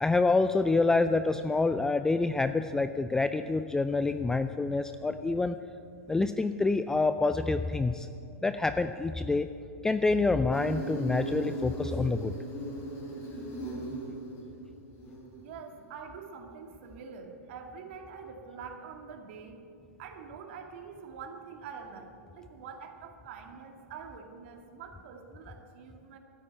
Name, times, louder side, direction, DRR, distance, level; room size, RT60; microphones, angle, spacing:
voice 1, 0.0-5.5 6.1-8.1 8.4-9.5 9.8-12.3, left 3 dB, 5° left, 10 dB, 0.4 m, -27 dB
Insect, 10.5-15.5, right 1 dB, 35° left, 4.3 m, -38 dB
voice 2, 15.4-19.6 20.0-26.2, right 6 dB, 50° right, 4 dB, 2.1 m, -45 dB
13.0 x 9.8 x 9.3 m, 2.5 s
hypercardioid pair, 110°, 8 cm